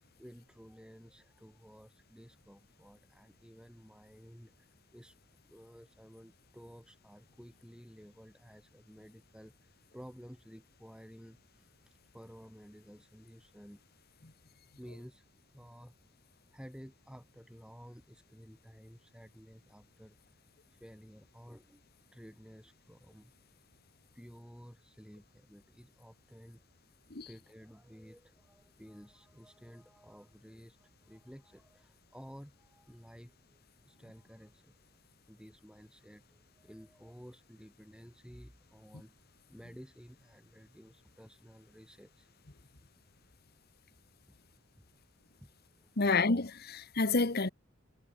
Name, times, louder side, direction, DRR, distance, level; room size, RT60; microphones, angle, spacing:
voice 1, 0.2-5.2 5.5-13.8 14.8-15.9 16.5-20.2 20.7-21.8 22.1-23.3 24.1-26.6 27.3-34.7 35.3-39.1 39.5-42.3 45.4-45.5 45.8-46.0, equal, 5° right, 6.9 m, -54 dB
voice 2, 46.0-47.5, left 3 dB, 45° left, 1.3 m, -29 dB
head